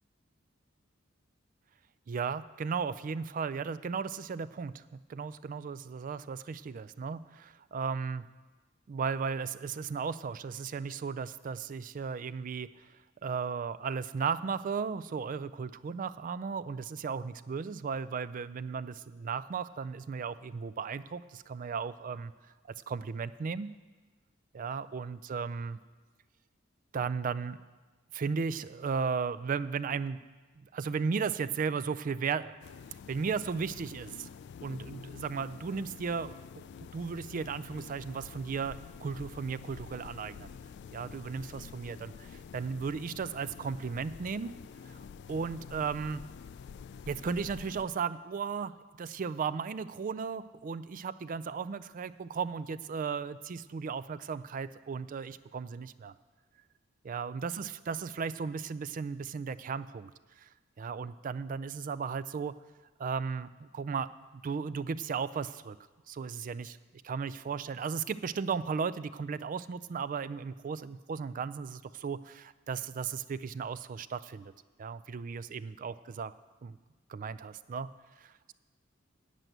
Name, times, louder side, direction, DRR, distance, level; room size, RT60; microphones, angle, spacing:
voice 1, 2.1-8.2 8.9-12.7 13.2-22.3 22.9-23.7 24.5-25.8 26.9-27.6 28.1-30.2 30.7-32.6 33.1-34.3 34.6-36.4 36.9-40.5 40.9-44.5 44.9-45.0 45.3-46.2 47.1-56.1 57.0-60.1 60.4-60.5 60.8-62.5 63.0-64.1 64.3-65.8 66.1-66.8 67.0-74.5 74.8-76.3 76.6-76.8 77.1-77.9 78.2-78.5, right 5 dB, 40° right, 16 dB, 0.3 m, -35 dB
sound 1, 32.6-47.9, left 6 dB, 60° left, 0.3 m, -48 dB
9.0 x 7.5 x 7.9 m, 1.3 s
head